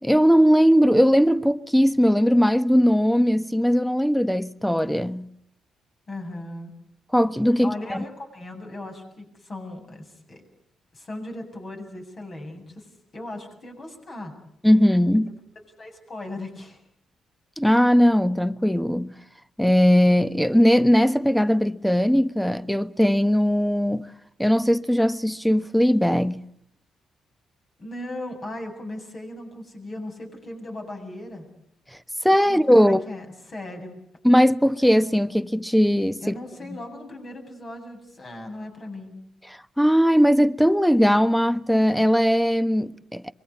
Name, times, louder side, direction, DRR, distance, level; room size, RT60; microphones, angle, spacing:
voice 1, 0.0-5.3 7.1-8.0 14.6-15.3 17.6-19.1 19.6-24.0 24.4-26.4 32.2-33.0 34.2-36.3 39.8-43.3, equal, ahead, 1.1 m, -19 dB
voice 2, 6.1-6.7 7.6-10.4 10.9-14.3 15.8-16.8 27.8-31.4 32.5-34.0 36.2-39.2, left 1 dB, 45° left, 7.8 m, -37 dB
24.5 x 22.0 x 8.5 m
supercardioid pair, 60°, 0 cm